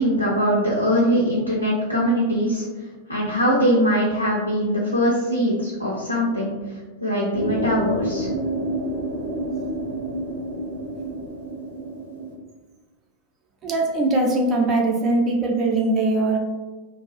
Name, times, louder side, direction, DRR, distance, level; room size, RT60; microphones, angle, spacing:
voice 1, 0.0-2.7 3.1-6.5 7.0-8.3, equal, 90° left, -5 dB, 0.4 m, -21 dB
sound 1, 7.3-12.3, right 1 dB, 80° right, 0.6 m, -29 dB
voice 2, 13.6-16.4, right 2 dB, 30° right, 0 dB, 0.4 m, -21 dB
2.3 x 2.3 x 2.3 m, 1.3 s
figure-of-eight pair, 90°, 0 cm